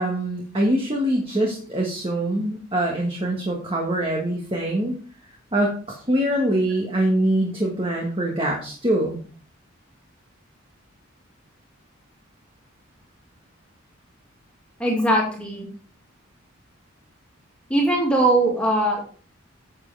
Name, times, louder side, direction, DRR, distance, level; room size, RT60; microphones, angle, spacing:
voice 1, 0.0-4.9 5.5-9.2, right 1 dB, 25° right, -1 dB, 1.5 m, -24 dB
voice 2, 14.8-15.7 17.7-19.0, right 1 dB, 5° left, -3 dB, 2.2 m, -20 dB
9.5 x 7.4 x 3.3 m, 0.42 s
head